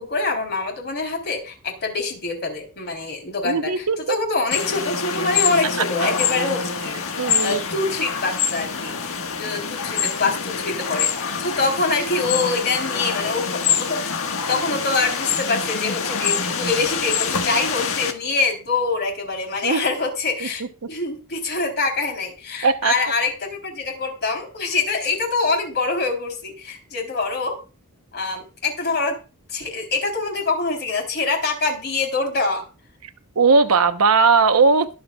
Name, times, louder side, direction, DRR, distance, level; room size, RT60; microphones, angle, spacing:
voice 1, 0.0-7.0 7.4-11.1 11.4-14.0 14.5-20.6 20.9-27.6 28.1-29.2 29.5-32.6, left 3 dB, 50° left, 4 dB, 3.7 m, -25 dB
voice 2, 3.4-4.2 6.0-6.1 7.2-7.6 19.6-19.8 20.4-20.5 22.6-22.9 33.4-35.0, right 4 dB, 70° right, 9 dB, 1.0 m, -18 dB
sound 1, 4.5-18.1, left 6 dB, 65° left, 1.6 m, -25 dB
22.0 x 7.8 x 2.4 m, 0.32 s
head